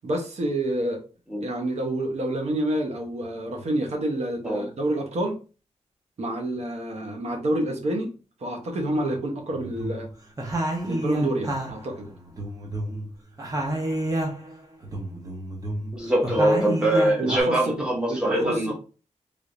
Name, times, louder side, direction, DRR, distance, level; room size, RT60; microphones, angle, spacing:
voice 1, 0.0-1.0 1.4-5.4 6.2-8.1 8.4-10.1 10.8-12.1 17.2-18.7, right 1 dB, 60° right, 1.0 m, -28 dB
sound 1, 9.5-10.1 10.4-13.1 13.4-14.5 14.8-17.4, right 1 dB, 30° right, 0.9 m, -29 dB
voice 2, 15.9-18.7, right 1 dB, 5° right, 1.4 m, -23 dB
3.5 x 3.4 x 2.6 m
wide cardioid pair, 155°, 12 cm